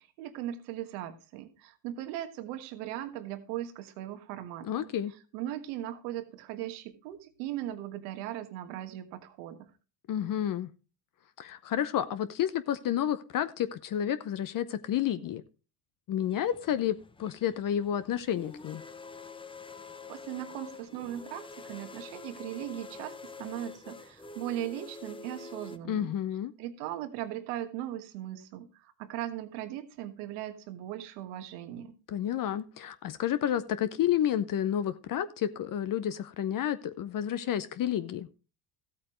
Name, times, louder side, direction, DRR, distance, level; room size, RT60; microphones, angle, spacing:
voice 1, 0.0-4.9 5.3-9.7 20.1-26.1 26.6-31.9, right 12 dB, 85° right, 9 dB, 1.5 m, -38 dB
voice 2, 4.6-5.1 10.1-10.7 11.4-15.4 16.1-18.8 25.8-26.5 32.1-38.3, left 10 dB, 45° left, 13 dB, 0.8 m, -30 dB
sound 1, 16.2-25.8, left 4 dB, 10° left, 0.6 m, -47 dB
14.0 x 8.4 x 3.1 m, 0.31 s
supercardioid pair, 95°, 46 cm